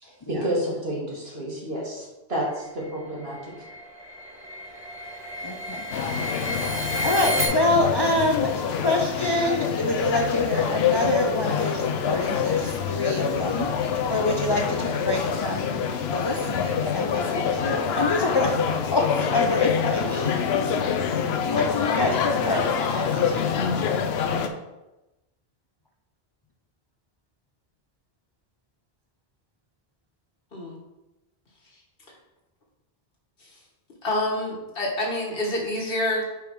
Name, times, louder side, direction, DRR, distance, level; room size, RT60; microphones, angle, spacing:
voice 1, 0.0-3.5, equal, 75° right, -4 dB, 2.2 m, -30 dB
sound 1, 2.7-7.5, equal, 25° right, 1.5 m, -32 dB
voice 2, 5.4-5.9 7.0-15.8 16.1-18.6 18.9-23.4, left 2 dB, 35° left, 0 dB, 0.5 m, -26 dB
sound 2, 5.9-24.5, left 7 dB, 90° left, 0.9 m, -26 dB
voice 3, 34.0-36.3, left 1 dB, 65° left, -2 dB, 1.7 m, -27 dB
5.1 x 4.9 x 4.6 m, 0.99 s
omnidirectional pair, 1.0 m